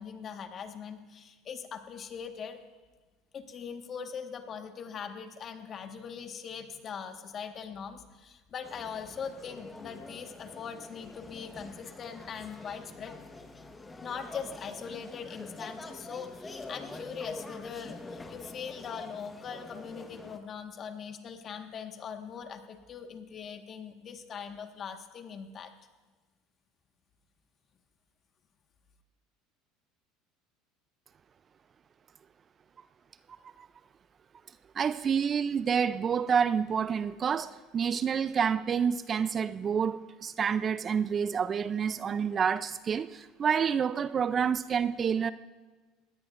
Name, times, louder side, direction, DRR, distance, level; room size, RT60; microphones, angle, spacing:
voice 1, 0.0-2.6 3.3-13.1 14.0-25.7, left 7 dB, 40° left, 6 dB, 1.5 m, -41 dB
sound 1, 8.6-20.4, left 2 dB, 15° left, 1.3 m, -46 dB
voice 2, 34.7-45.3, right 7 dB, 35° right, 15 dB, 0.5 m, -28 dB
21.0 x 17.0 x 2.6 m, 1.3 s
hypercardioid pair, 80°, 0 cm